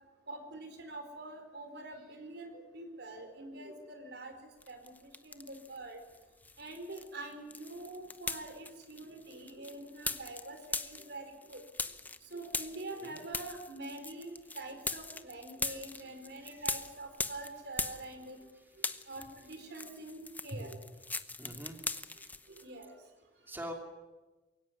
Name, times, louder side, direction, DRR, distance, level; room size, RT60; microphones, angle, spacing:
voice 1, 0.3-4.3 4.7-4.8 5.2-6.0 6.6-10.6 10.8-11.6 12.3-18.4 19.1-20.8 22.5-22.9, right 2 dB, 65° right, 7 dB, 4.2 m, -45 dB
sound 1, 4.6-5.8 6.1-18.5 18.7-22.6, left 3 dB, 10° left, 0.9 m, -40 dB
voice 2, 16.4-16.8 19.2-19.3 21.4-21.8 22.2-22.3 23.5-23.7, equal, 10° right, 3 dB, 2.9 m, -45 dB
23.0 x 17.0 x 9.7 m, 1.1 s
head